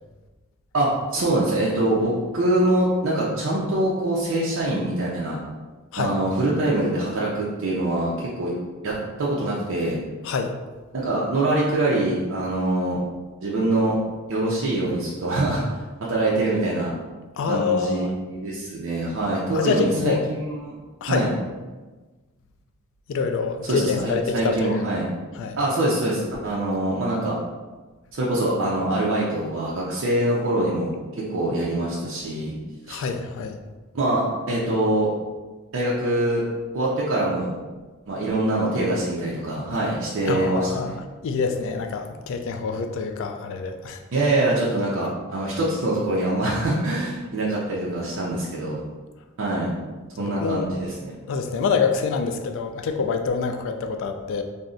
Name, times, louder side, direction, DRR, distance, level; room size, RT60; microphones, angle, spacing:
voice 1, 0.7-5.4 5.9-8.5 8.8-8.9 9.2-10.0 10.9-13.0 13.4-14.0 14.3-15.6 16.0-16.9 17.5-20.7 21.1-21.3 23.6-25.1 25.6-27.4 28.1-32.5 32.9-33.0 33.9-35.1 35.7-36.4 36.7-37.5 38.1-41.0 44.1-48.8 49.4-49.7 50.2-51.1, right 1 dB, 60° right, -5 dB, 0.5 m, -24 dB
voice 2, 17.4-18.1 19.5-20.2 21.0-21.3 23.1-24.8 25.4-25.6 32.9-33.6 40.3-44.0 50.2-50.8 51.3-54.4, left 5 dB, 60° left, 5 dB, 0.3 m, -26 dB
2.5 x 2.0 x 3.7 m, 1.3 s
head